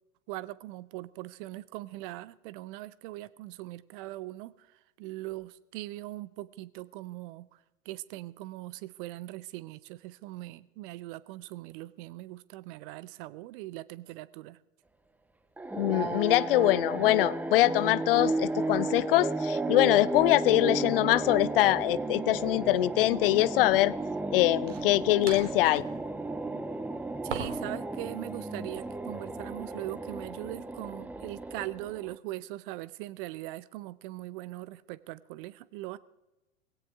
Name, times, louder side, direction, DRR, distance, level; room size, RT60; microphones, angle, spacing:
voice 1, 0.3-14.6 27.2-36.0, right 17 dB, 45° right, 0.7 m, -41 dB
sound 1, 15.6-32.1, right 2 dB, 5° right, 0.5 m, -33 dB
voice 2, 15.8-24.0 24.3-25.8, left 17 dB, 50° left, 0.4 m, -24 dB
sound 2, 22.3-22.5 24.7-26.0 27.3-27.8 28.1-28.9, right 6 dB, 65° right, 2.6 m, -41 dB
18.5 x 17.0 x 3.6 m
figure-of-eight pair, 95°, 39 cm